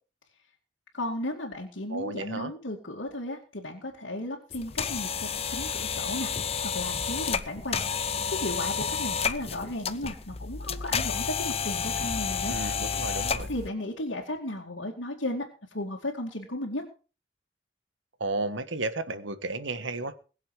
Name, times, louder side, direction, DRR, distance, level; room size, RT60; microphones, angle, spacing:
voice 1, 0.9-7.8 8.3-12.6 13.5-16.8, left 1 dB, 80° left, -4 dB, 2.4 m, -35 dB
voice 2, 1.9-2.5 12.5-13.5 18.2-20.1, right 2 dB, 85° right, 11 dB, 1.5 m, -33 dB
sound 1, 4.5-13.7, left 6 dB, 30° left, 0.7 m, -31 dB
21.5 x 7.4 x 4.9 m, 0.36 s
head